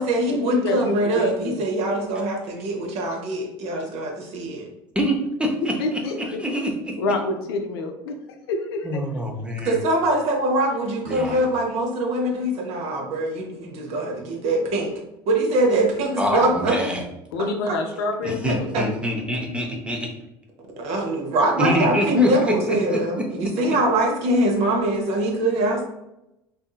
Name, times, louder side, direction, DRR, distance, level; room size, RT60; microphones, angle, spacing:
voice 1, 0.0-4.7 9.6-14.9 15.3-16.7 17.7-17.8 18.5-18.9 20.8-25.8, right 1 dB, 60° right, 0 dB, 0.8 m, -23 dB
voice 2, 0.5-1.6 5.8-6.4 7.0-8.2 8.5-9.0 17.3-18.7, left 2 dB, 80° left, 4 dB, 0.5 m, -27 dB
voice 3, 5.0-6.0 6.4-7.0 8.8-9.8 11.1-11.4 16.2-17.0 18.2-20.1 21.6-23.0, equal, 10° right, 2 dB, 0.6 m, -25 dB
2.6 x 2.5 x 2.3 m, 0.88 s
hypercardioid pair, 75°, 12 cm